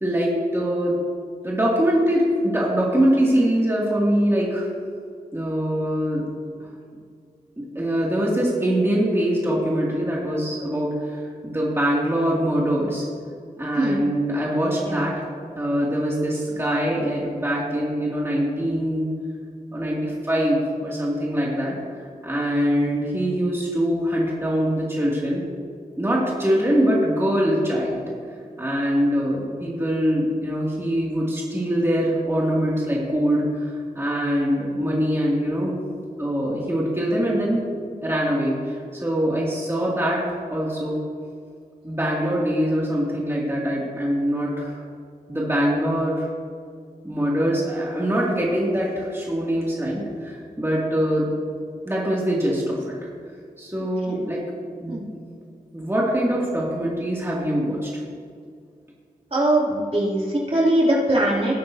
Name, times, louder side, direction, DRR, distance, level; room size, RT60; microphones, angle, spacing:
voice 1, 0.0-0.9 1.4-4.7 5.3-6.2 6.6-6.7 7.6-13.1 13.6-15.2 15.5-19.1 19.7-21.7 22.2-25.4 26.0-28.0 28.6-35.7 36.2-37.6 38.0-41.0 41.8-44.8 45.3-46.3 47.0-51.3 51.8-52.9 53.6-54.4 54.8-55.0 55.7-58.0, equal, 15° right, -5 dB, 2.5 m, -23 dB
voice 2, 59.3-61.6, right 1 dB, 40° right, -5 dB, 2.9 m, -21 dB
18.5 x 9.1 x 2.8 m, 2.2 s
cardioid pair, 60°, 16 cm